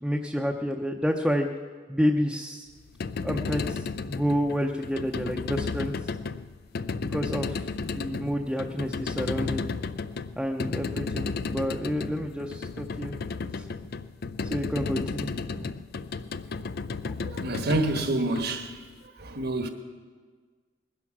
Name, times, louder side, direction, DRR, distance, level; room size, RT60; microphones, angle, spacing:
voice 1, 0.0-1.5 1.9-2.7 3.2-5.9 7.0-9.6 10.4-13.2 13.5-13.7 14.4-15.7, equal, 5° right, 0.7 m, -29 dB
Metal Ripple - Gearlike, 2.8-19.0, left 4 dB, 55° left, 0.5 m, -33 dB
voice 2, 17.2-18.8 19.2-19.7, right 2 dB, 60° right, 1.4 m, -28 dB
20.0 x 10.5 x 6.1 m
head